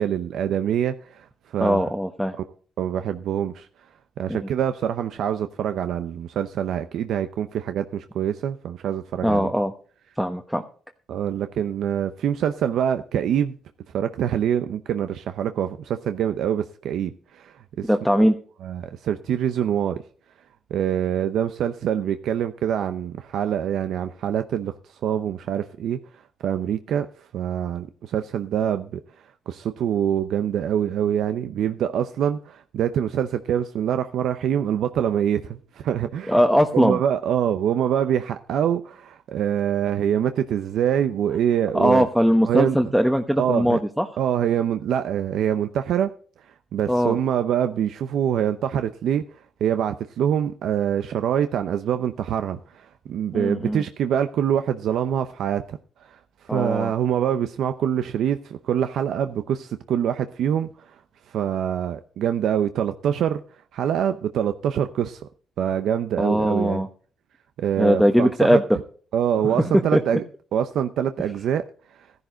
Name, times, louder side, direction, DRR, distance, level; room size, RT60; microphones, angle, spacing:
voice 1, 0.0-1.8 2.8-3.7 4.2-9.5 11.1-13.6 13.9-18.3 18.6-20.0 20.7-29.0 29.5-36.4 36.7-42.1 42.5-42.8 43.4-43.8 44.2-46.1 46.5-61.0 61.3-63.4 63.7-65.3 65.6-66.8 67.6-68.6 69.1-70.2 70.5-71.6 71.9-72.1, right 9 dB, 75° right, 0.7 m, -25 dB
voice 2, 1.6-2.4 4.3-4.4 9.2-9.7 10.2-10.6 17.9-18.4 36.3-37.0 41.7-44.1 46.9-47.2 53.3-53.8 56.5-56.9 66.2-66.9 67.8-68.6 69.4-70.0, equal, ahead, 1.0 m, -20 dB
14.0 x 11.0 x 3.9 m
cardioid pair, 90°, 0 cm